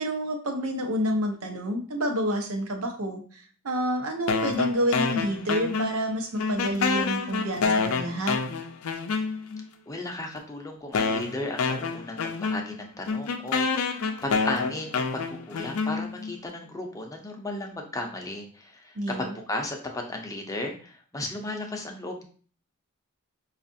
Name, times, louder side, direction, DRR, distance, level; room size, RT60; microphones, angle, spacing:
voice 1, 0.0-8.4 18.9-19.4, equal, 85° right, 3 dB, 0.8 m, -28 dB
sound 1, 4.3-6.1 6.4-9.6 10.4-10.5 10.9-16.3, left 4 dB, 80° left, 0.4 m, -28 dB
voice 2, 9.9-22.2, left 2 dB, 15° left, 2 dB, 0.5 m, -35 dB
5.2 x 2.4 x 2.6 m, 0.43 s
head